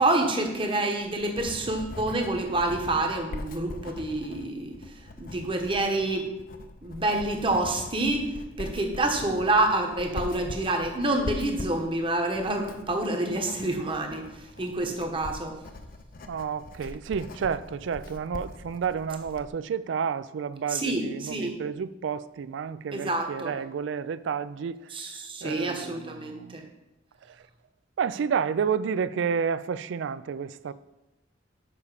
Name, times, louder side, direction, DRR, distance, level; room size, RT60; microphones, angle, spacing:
voice 1, 0.0-4.7 5.2-6.3 6.8-8.3 8.6-14.3 14.6-15.6 20.7-21.5 22.9-23.5 24.9-26.6, right 2 dB, 25° right, 1.0 m, -27 dB
Writing, 0.7-19.5, left 2 dB, 50° left, 0.6 m, -42 dB
voice 2, 16.3-24.9 25.4-26.6 27.3-27.4 28.0-30.7, right 6 dB, 75° right, 0.3 m, -30 dB
7.0 x 5.5 x 4.9 m
head